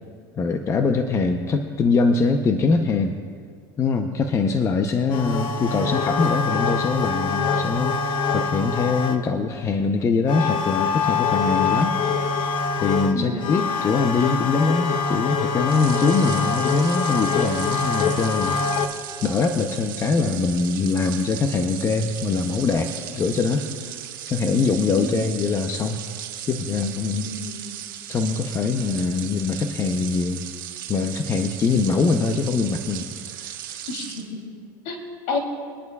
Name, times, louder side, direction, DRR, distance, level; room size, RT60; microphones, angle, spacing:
voice 1, 0.4-3.2 3.8-12.4 12.8-18.6 19.2-26.0 26.5-27.3 28.1-30.4 30.9-33.1 33.3-33.8, left 4 dB, 25° left, 6 dB, 0.8 m, -23 dB
sound 1, 5.1-9.4 10.3-18.9, left 5 dB, 50° left, 1.0 m, -24 dB
voice 2, 13.1-13.6 24.9-25.3 27.2-27.6 31.7-32.1 33.9-34.4 34.8-35.0 35.3-35.4, left 3 dB, 65° left, 0 dB, 3.1 m, -31 dB
sound 2, 15.6-34.3, right 11 dB, 90° right, 1.6 m, -37 dB
23.0 x 10.5 x 2.4 m, 2.1 s
supercardioid pair, 120°, 11 cm